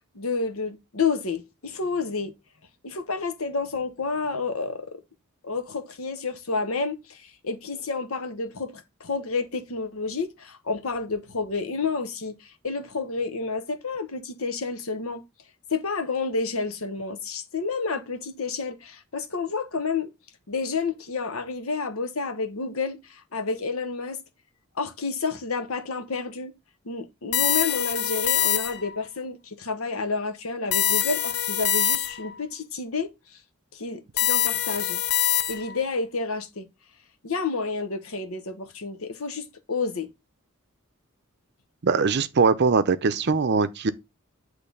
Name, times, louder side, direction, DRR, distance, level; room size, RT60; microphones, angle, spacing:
voice 1, 0.1-2.3 2.8-5.0 5.4-15.2 15.7-20.1 20.5-24.2 24.8-26.5 26.8-33.1 33.7-35.0 35.5-36.7 37.2-40.1, left 4 dB, 80° left, 1.2 m, -30 dB
sound 1, 27.3-29.0 30.7-32.4 34.2-35.8, left 11 dB, 50° left, 0.5 m, -24 dB
voice 2, 41.8-43.9, right 4 dB, 50° right, 0.6 m, -21 dB
8.4 x 3.2 x 5.4 m
head